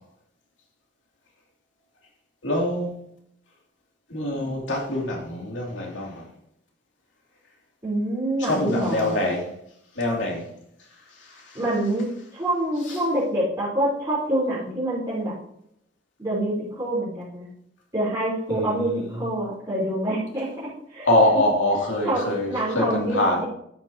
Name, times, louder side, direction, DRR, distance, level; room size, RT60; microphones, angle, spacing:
voice 1, 2.4-2.9 4.1-6.2 8.4-9.5 10.0-10.5 11.2-11.6 12.9-13.0 18.5-19.1 21.0-23.4, left 1 dB, 90° left, -1 dB, 2.7 m, -24 dB
voice 2, 7.8-9.2 11.5-15.3 16.2-17.5 17.9-21.1 22.0-23.4, right 1 dB, 20° right, -12 dB, 3.8 m, -26 dB
13.0 x 7.7 x 2.9 m, 0.74 s
head